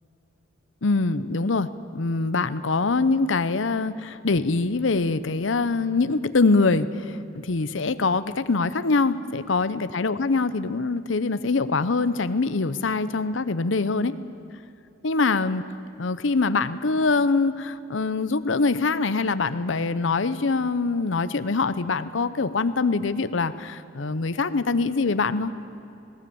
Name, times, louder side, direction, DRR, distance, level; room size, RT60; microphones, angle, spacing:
voice 1, 0.8-7.2 7.4-14.2 15.0-15.6 16.0-25.5, left 3 dB, 70° left, 13 dB, 0.7 m, -24 dB
19.0 x 18.0 x 8.6 m, 2.8 s
head